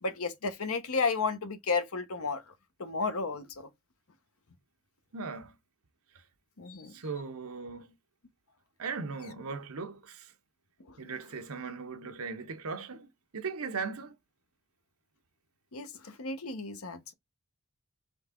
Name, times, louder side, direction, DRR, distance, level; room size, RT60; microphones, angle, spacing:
voice 1, 0.0-2.5 2.8-3.7 6.6-6.9 15.7-17.1, left 4 dB, 75° left, 0.9 m, -33 dB
voice 2, 5.1-5.5 6.9-7.9 8.8-10.3 11.0-14.1, right 4 dB, 80° right, 0.8 m, -38 dB
3.9 x 3.4 x 3.6 m
head